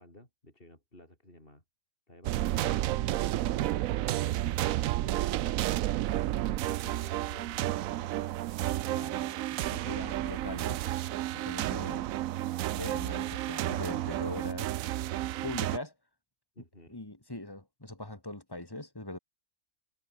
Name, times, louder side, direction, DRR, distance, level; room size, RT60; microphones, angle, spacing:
voice 1, 0.0-1.6 2.1-3.7 4.4-5.6 5.9-8.3 11.7-12.2 16.6-17.0, left 1 dB, 40° left, 7.5 m, -54 dB
sound 1, 2.2-15.8, right 14 dB, 75° right, 1.0 m, -31 dB
voice 2, 8.9-10.8 11.4-12.0 12.7-15.0 15.4-15.9 16.9-19.2, left 1 dB, 15° left, 2.5 m, -41 dB
omnidirectional pair, 1.5 m